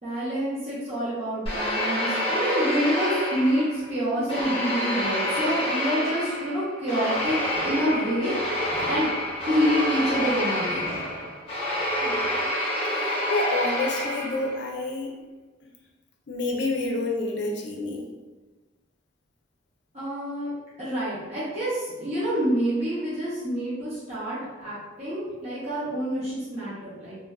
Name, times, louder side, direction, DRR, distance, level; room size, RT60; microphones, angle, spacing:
voice 1, 0.0-8.5 8.8-9.1 9.4-10.8 19.9-20.5 20.8-27.2, equal, 35° right, -11 dB, 0.7 m, -27 dB
sound 1, 1.5-3.9 4.3-14.6, left 1 dB, 30° left, 0.7 m, -28 dB
sound 2, 7.1-12.3, equal, 75° right, 1.1 m, -45 dB
voice 2, 12.0-12.5 13.3-15.1 16.3-18.0, left 2 dB, 70° left, 0 dB, 0.5 m, -28 dB
3.1 x 2.3 x 2.3 m, 1.2 s
head